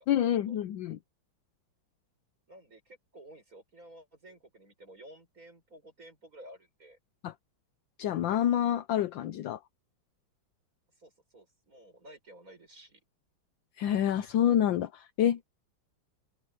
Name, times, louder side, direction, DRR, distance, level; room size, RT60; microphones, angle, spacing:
voice 1, 0.1-1.0 7.2-7.3 8.0-9.6 13.8-15.4, left 10 dB, 75° left, 1.4 m, -27 dB
voice 2, 2.5-7.0 11.0-13.0, right 1 dB, 40° right, 7.2 m, -53 dB
open air
omnidirectional pair, 2.2 m